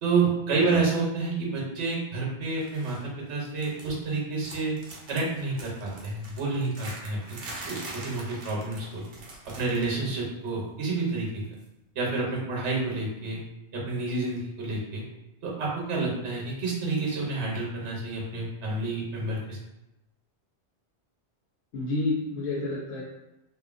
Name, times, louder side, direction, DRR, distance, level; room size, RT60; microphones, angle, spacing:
voice 1, 0.0-4.8 5.1-7.4 7.7-9.0 9.5-11.4 11.9-13.4 13.7-15.0 15.4-19.6, right 3 dB, 80° right, -3 dB, 1.1 m, -29 dB
sound 1, 2.6-3.0 3.3-4.1 4.4-10.0 10.2-10.5 11.6-11.7, right 2 dB, 55° right, 0.7 m, -43 dB
voice 2, 21.7-23.0, left 2 dB, 70° left, -6 dB, 0.8 m, -30 dB
2.7 x 2.4 x 2.4 m, 0.93 s
omnidirectional pair, 1.2 m